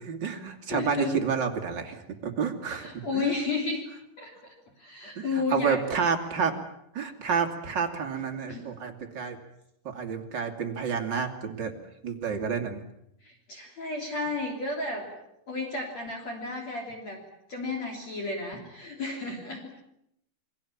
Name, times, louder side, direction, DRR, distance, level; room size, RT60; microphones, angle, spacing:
voice 1, 0.0-3.3 5.2-5.3 5.5-6.5 6.9-9.4 9.8-11.7 12.0-12.8, right 6 dB, 30° right, 4 dB, 2.2 m, -29 dB
voice 2, 0.7-1.2 2.6-3.9 4.2-5.8 8.5-8.7 13.2-15.2 15.5-17.2 17.5-19.7, left 3 dB, 40° left, 1 dB, 4.1 m, -33 dB
28.5 x 22.5 x 7.4 m, 0.77 s
omnidirectional pair, 5.4 m